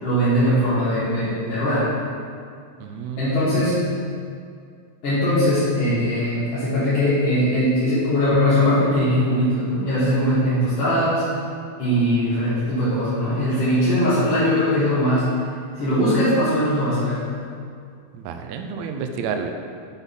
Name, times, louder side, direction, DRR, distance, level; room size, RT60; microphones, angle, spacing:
voice 1, 0.0-1.9 3.2-3.9 5.0-11.3 11.8-15.4 15.7-17.2, equal, 55° left, -14 dB, 2.8 m, -20 dB
voice 2, 2.8-3.7 18.1-19.5, right 5 dB, 80° right, 5 dB, 1.7 m, -30 dB
8.0 x 4.0 x 5.4 m, 2.3 s
omnidirectional pair, 3.4 m